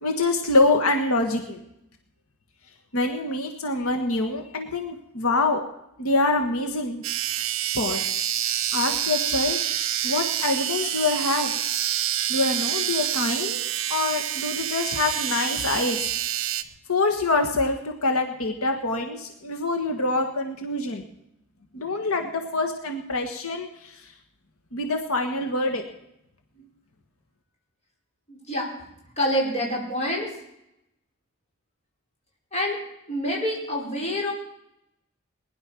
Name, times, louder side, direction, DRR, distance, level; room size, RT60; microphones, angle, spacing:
voice 1, 0.0-1.6 2.9-5.6 6.0-7.0 7.7-8.2 8.7-9.6 10.0-11.5 12.3-16.1 16.9-21.0 21.7-24.1 24.7-25.8, left 2 dB, 85° left, 4 dB, 1.7 m, -25 dB
sound 1, 7.0-16.6, right 11 dB, 65° right, 1.0 m, -27 dB
voice 2, 28.3-28.7 29.2-30.3 32.5-32.8 33.1-34.3, equal, 30° left, -2 dB, 5.4 m, -26 dB
20.0 x 11.0 x 6.1 m, 0.81 s
head